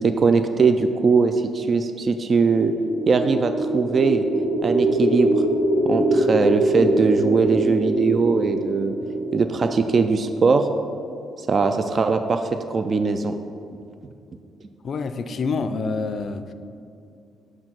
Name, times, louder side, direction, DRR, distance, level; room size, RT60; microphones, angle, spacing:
voice 1, 0.0-2.7 3.1-4.2 4.6-5.4 5.8-8.9 9.3-10.7 11.5-13.3, right 4 dB, 40° right, 7 dB, 0.3 m, -20 dB
sound 1, 2.6-10.6, right 1 dB, 90° right, 1.4 m, -24 dB
voice 2, 14.8-16.5, left 4 dB, 55° left, 10 dB, 0.4 m, -27 dB
6.3 x 4.3 x 6.0 m, 2.5 s
cardioid pair, 90°, 0 cm